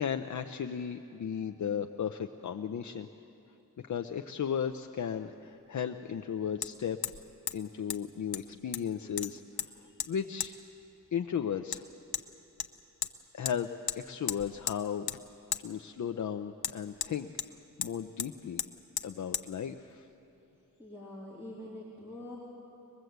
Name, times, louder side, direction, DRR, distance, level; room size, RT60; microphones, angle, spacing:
voice 1, 0.0-3.1 3.8-7.0 7.5-9.4 9.8-10.6 11.1-11.9 13.3-13.7 14.0-15.1 15.6-17.3 17.8-18.6 19.0-20.1, left 8 dB, 55° left, 7 dB, 0.6 m, -35 dB
Hammer, 4.7-4.8 6.6-6.7 7.0-7.2 7.5-7.6 7.9-8.0 8.3-8.9 9.2-9.7 10.0-10.1 10.4-10.5 11.7-11.8 12.1-12.3 12.6-13.1 13.5-13.6 13.9-14.0 14.3-14.8 15.1-15.2 15.5-15.6 16.6-17.5 17.8-17.9 18.2-18.3 18.6-18.7 19.0-19.1 19.3-19.5, left 9 dB, 85° left, 0.8 m, -35 dB
voice 2, 20.8-22.4, left 1 dB, 5° right, -6 dB, 3.1 m, -44 dB
22.5 x 21.0 x 8.0 m, 2.8 s
wide cardioid pair, 125°, 36 cm